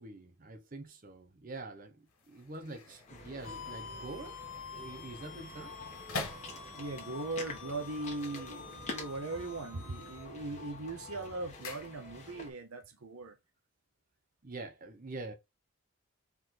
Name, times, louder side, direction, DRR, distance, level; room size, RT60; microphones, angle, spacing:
voice 1, 0.0-4.4 4.7-5.8 14.4-15.3, right 2 dB, 40° right, 0.7 m, -45 dB
sound 1, 2.0-7.1 8.1-9.2 9.5-10.0 10.4-12.5 12.7-12.8, left 3 dB, 90° left, 1.9 m, -46 dB
sound 2, 3.1-12.5, left 3 dB, 35° left, 1.3 m, -47 dB
sound 3, 3.4-10.3, left 6 dB, 65° left, 0.8 m, -49 dB
voice 2, 6.8-13.4, right 2 dB, 90° right, 0.9 m, -39 dB
4.5 x 3.1 x 3.8 m
head